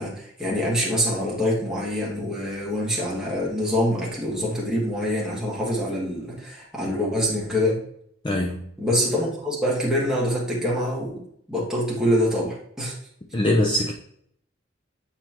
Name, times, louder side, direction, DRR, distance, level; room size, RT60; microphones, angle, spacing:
voice 1, 0.0-7.8 8.8-11.2 11.5-12.9, equal, 5° right, -6 dB, 1.9 m, -25 dB
voice 2, 8.2-8.6 13.3-13.9, left 1 dB, 25° left, 0 dB, 0.6 m, -22 dB
8.8 x 4.4 x 3.0 m, 0.68 s
head